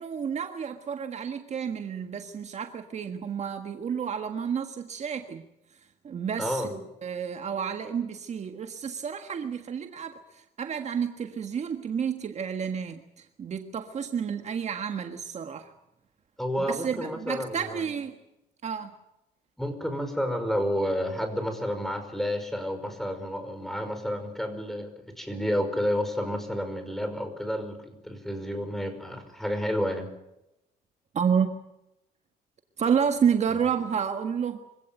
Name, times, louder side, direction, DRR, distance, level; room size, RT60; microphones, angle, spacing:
voice 1, 0.0-5.4 5.7-15.7 16.7-18.2 18.6-18.9 31.1-31.5 32.8-34.6, right 7 dB, 40° right, 6 dB, 1.6 m, -30 dB
voice 2, 6.4-6.7 16.4-17.9 19.6-30.1 33.5-33.6, equal, ahead, 8 dB, 5.4 m, -30 dB
25.5 x 16.5 x 9.2 m, 0.89 s
cardioid pair, 110°, 17 cm